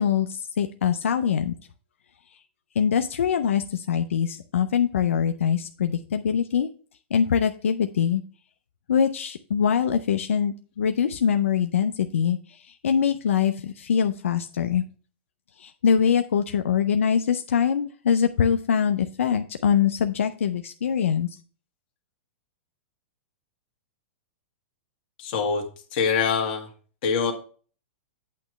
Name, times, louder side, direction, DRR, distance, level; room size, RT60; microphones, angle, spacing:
voice 1, 0.0-1.5 2.8-6.7 7.1-8.2 8.9-12.4 12.7-14.8 15.6-21.3, left 7 dB, 90° left, 7 dB, 0.5 m, -23 dB
voice 2, 25.2-25.6 25.9-26.7 27.0-27.3, left 5 dB, 50° left, 3 dB, 1.7 m, -24 dB
8.5 x 3.1 x 6.5 m, 0.40 s
hypercardioid pair, 140°, 7 cm